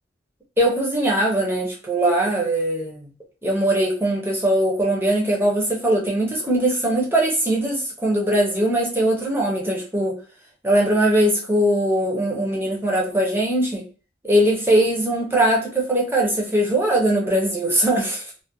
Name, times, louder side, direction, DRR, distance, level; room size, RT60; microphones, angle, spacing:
voice 1, 0.6-3.1 3.4-10.2 10.6-13.8 14.2-18.2, right 1 dB, 15° right, -1 dB, 0.5 m, -21 dB
2.4 x 2.1 x 2.6 m, 0.35 s
head